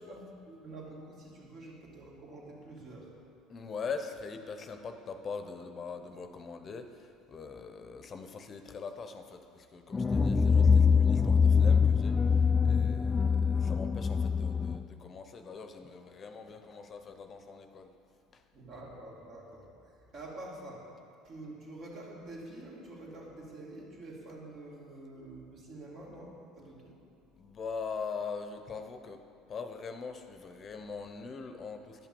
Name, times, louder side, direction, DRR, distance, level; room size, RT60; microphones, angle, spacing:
voice 1, 0.0-3.2 18.5-20.9 21.2-27.0, right 2 dB, 55° right, -3 dB, 2.8 m, -47 dB
voice 2, 3.5-17.9 18.3-18.4 27.4-32.1, left 5 dB, 40° left, 7 dB, 0.7 m, -42 dB
sound 1, 9.9-14.8, left 6 dB, 20° left, 0.3 m, -24 dB
10.5 x 5.8 x 7.0 m, 2.5 s
hypercardioid pair, 75°, 0 cm